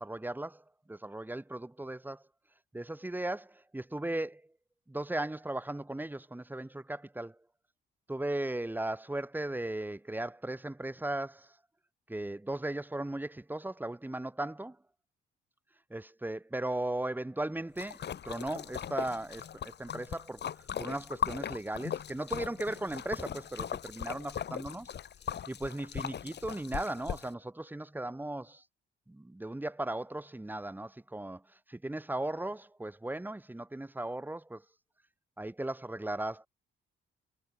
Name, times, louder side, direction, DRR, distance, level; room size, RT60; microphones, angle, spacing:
voice 1, 0.0-2.2 2.7-4.5 4.9-7.4 8.1-11.6 12.1-14.8 15.9-24.9 25.5-28.6 29.1-34.6 35.4-36.5, right 1 dB, 10° right, 1.9 m, -37 dB
Splash splatter, 17.8-27.3, left 9 dB, 60° left, 3.7 m, -39 dB
cardioid pair, 90°, 20 cm